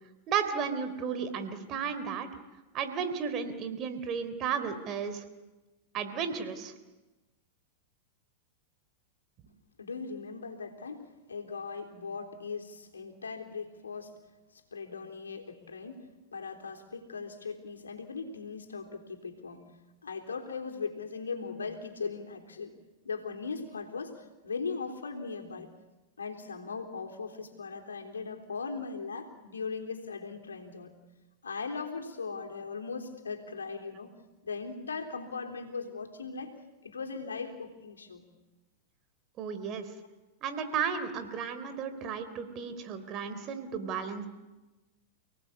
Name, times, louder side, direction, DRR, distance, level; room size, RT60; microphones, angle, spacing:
voice 1, 0.3-2.3 2.7-5.2 5.9-6.7 39.4-39.9 40.4-44.3, right 6 dB, 40° right, 10 dB, 3.7 m, -33 dB
voice 2, 9.8-14.1 14.5-19.7 20.0-22.8 23.0-25.7 26.2-30.9 31.4-34.1 34.4-36.5 36.8-38.3 39.7-40.1, left 4 dB, 90° left, 2 dB, 3.5 m, -39 dB
30.0 x 18.5 x 8.6 m, 1.1 s
hypercardioid pair, 100°, 0 cm